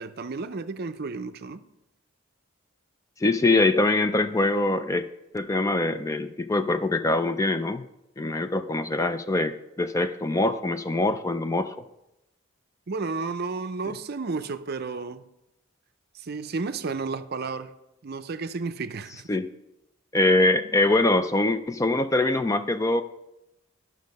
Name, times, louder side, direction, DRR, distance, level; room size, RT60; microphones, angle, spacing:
voice 1, 0.0-1.6 12.9-15.3 16.1-17.7 18.0-19.3, right 4 dB, 50° right, 0.5 m, -32 dB
voice 2, 3.2-5.1 5.3-7.8 8.2-11.8 19.3-19.5 20.1-23.0, left 2 dB, 15° left, 0.3 m, -23 dB
11.5 x 6.4 x 5.3 m
head